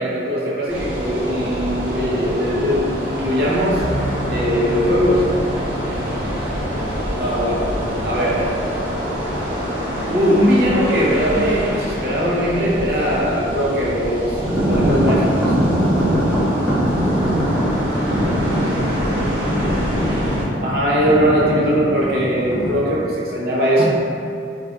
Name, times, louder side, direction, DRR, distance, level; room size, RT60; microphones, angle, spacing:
voice 1, 0.0-3.9 4.2-5.4 7.2-7.8 8.0-8.6 10.1-14.4 14.7-15.6 20.6-23.8, equal, 55° right, -5 dB, 0.6 m, -20 dB
sound 1, 0.7-20.4, equal, 30° right, 0.9 m, -26 dB
sound 2, 3.8-10.9, right 1 dB, 45° left, 0.8 m, -33 dB
sound 3, 14.4-22.8, equal, ahead, 0.5 m, -21 dB
voice 2, 18.7-20.6, left 1 dB, 80° left, 1 dB, 0.4 m, -34 dB
2.3 x 2.2 x 3.8 m, 2.5 s
head